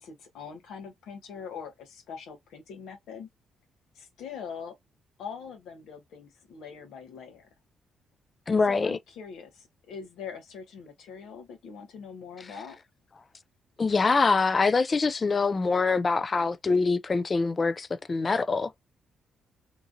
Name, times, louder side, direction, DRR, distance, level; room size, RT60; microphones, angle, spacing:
voice 1, 0.0-3.3 3.9-4.7 5.2-7.5 8.7-12.8, left 6 dB, 80° left, 1.0 m, -42 dB
voice 2, 8.5-9.0 13.8-18.7, left 4 dB, 35° left, 0.3 m, -24 dB
2.9 x 2.4 x 2.5 m
cardioid pair, 95°, 0 cm